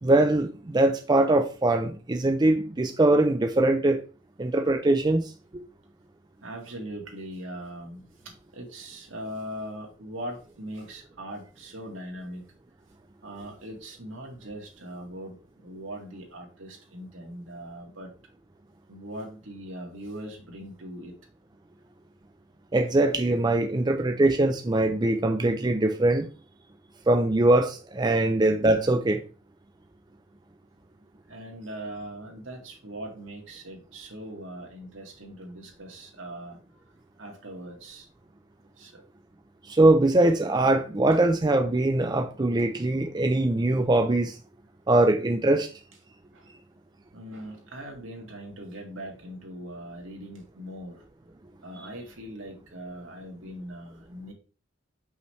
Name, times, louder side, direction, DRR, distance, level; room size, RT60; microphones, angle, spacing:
voice 1, 0.0-4.0 4.4-5.2 22.7-26.3 27.1-29.2 39.7-44.4 44.9-45.7, right 2 dB, 20° right, 0.5 m, -22 dB
voice 2, 6.4-12.4 13.2-15.4 15.6-18.1 18.9-21.1 23.1-23.2 25.0-25.1 31.3-36.6 37.2-38.1 38.8-39.0 46.3-46.5 47.1-51.0 51.6-54.3, right 1 dB, 80° right, 1.9 m, -40 dB
5.8 x 5.6 x 3.1 m
head